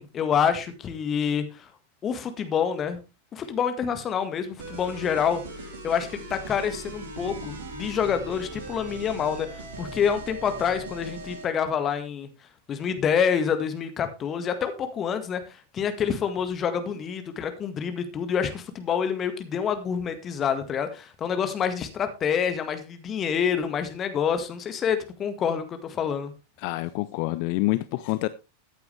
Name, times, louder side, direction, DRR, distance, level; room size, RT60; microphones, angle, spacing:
voice 1, 0.0-1.7 2.0-3.0 3.3-5.4 5.8-12.3 12.7-26.3, left 7 dB, 25° left, 1.8 m, -27 dB
sound 1, 4.6-11.5, right 2 dB, 60° right, 3.1 m, -39 dB
voice 2, 26.6-28.3, left 19 dB, 45° left, 0.6 m, -27 dB
14.5 x 9.2 x 3.4 m
figure-of-eight pair, 90°, 0 cm